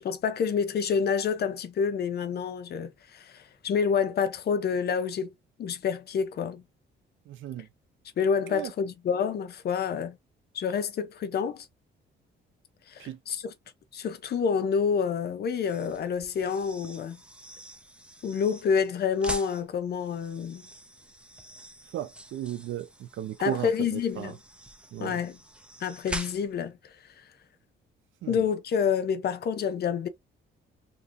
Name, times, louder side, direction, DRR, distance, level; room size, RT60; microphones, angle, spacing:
voice 1, 0.0-5.3 5.6-6.6 8.2-10.2 10.5-11.7 12.9-13.5 13.9-17.2 18.2-20.7 23.4-24.4 25.0-25.4 25.8-26.8 28.3-30.1, left 6 dB, 55° left, 0.6 m, -28 dB
voice 2, 7.3-7.7 8.5-8.7 13.0-13.2 21.9-24.4 24.9-25.2 28.2-28.4, right 12 dB, 75° right, 0.6 m, -35 dB
sound 1, 15.6-26.7, right 1 dB, 5° right, 0.6 m, -44 dB
3.0 x 2.6 x 2.4 m
cardioid pair, 90°, 20 cm